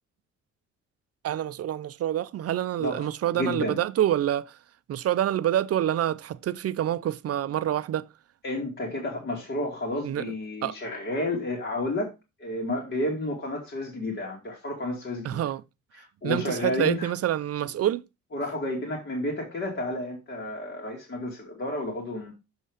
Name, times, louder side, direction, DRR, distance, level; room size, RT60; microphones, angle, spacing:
voice 1, 1.2-4.6 4.9-8.1 10.0-10.2 10.6-10.7 15.2-15.6 16.2-18.0, right 11 dB, 55° right, 0.6 m, -27 dB
voice 2, 2.8-3.8 8.4-12.1 12.4-15.4 15.9-17.1 18.3-22.4, left 2 dB, 40° left, 2.3 m, -31 dB
6.7 x 5.5 x 4.9 m
cardioid pair, 90°, 30 cm